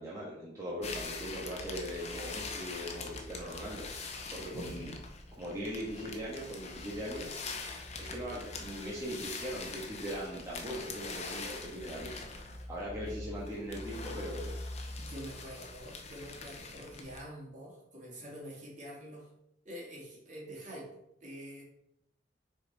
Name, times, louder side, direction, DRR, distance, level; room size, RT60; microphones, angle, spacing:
voice 1, 0.0-3.9 4.3-4.9 5.4-7.3 8.0-12.2 12.7-14.6, equal, 15° right, -7 dB, 1.5 m, -40 dB
sound 1, 0.8-17.2, left 3 dB, 35° left, 0.8 m, -43 dB
voice 2, 15.0-19.3 19.6-20.9 21.2-21.6, equal, 45° right, -4 dB, 2.3 m, -46 dB
6.4 x 4.4 x 4.0 m, 0.79 s
head